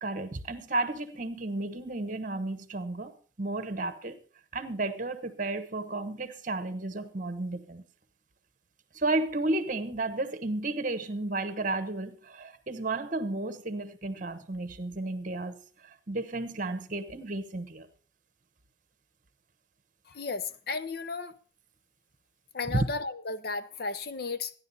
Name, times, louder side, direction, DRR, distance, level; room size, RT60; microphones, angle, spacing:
voice 1, 0.0-3.1 3.4-4.2 4.5-7.8 8.9-17.9 22.7-22.8, right 2 dB, 45° right, 1.1 m, -32 dB
voice 2, 20.1-21.4 22.5-24.5, left 4 dB, 55° left, 0.7 m, -34 dB
13.5 x 10.5 x 4.1 m
head